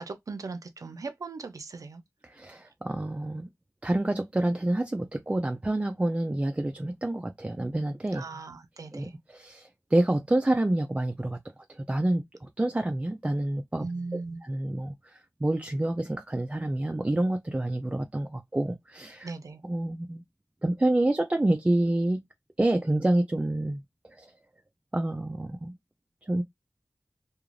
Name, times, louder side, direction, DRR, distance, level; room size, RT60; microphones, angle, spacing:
voice 1, 0.0-2.0 8.1-9.1 13.8-14.4 19.2-19.6, right 3 dB, 80° right, 0.5 m, -38 dB
voice 2, 2.2-3.5 3.8-8.3 8.9-11.4 11.7-19.3 19.6-20.2 20.6-22.2 22.6-23.8 24.1-24.3 24.9-25.7 26.3-26.4, right 1 dB, 20° right, 0.3 m, -28 dB
2.5 x 2.3 x 3.0 m
wide cardioid pair, 70°, 6 cm